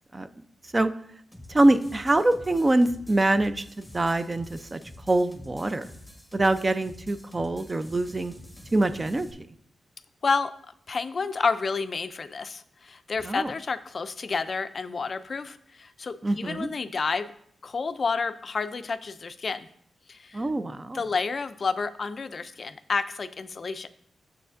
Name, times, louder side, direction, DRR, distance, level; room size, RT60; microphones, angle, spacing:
sound 1, 1.3-9.3, left 1 dB, 5° left, 1.1 m, -47 dB
voice 1, 1.5-4.8 5.1-5.9 6.3-8.3 8.7-9.3 13.2-13.5 16.2-16.7 20.3-21.0, right 2 dB, 30° right, 11 dB, 0.4 m, -24 dB
voice 2, 10.9-17.3 17.6-19.7 20.1-20.5 20.9-23.9, left 4 dB, 55° left, 11 dB, 0.3 m, -30 dB
6.7 x 6.6 x 2.5 m, 0.66 s
cardioid pair, 60°, 0 cm